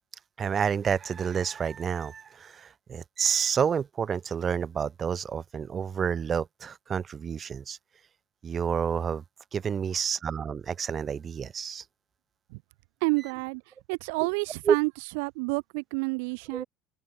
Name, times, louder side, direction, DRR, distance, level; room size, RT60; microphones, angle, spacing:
voice 1, 0.4-7.8 8.4-9.2 9.5-11.8 14.7-14.8 16.5-16.7, right 7 dB, 25° right, 0.8 m, -29 dB
voice 2, 13.0-13.6 13.9-14.9 15.2-16.6, right 32 dB, 75° right, 0.6 m, -29 dB
supercardioid pair, 125°, 0 cm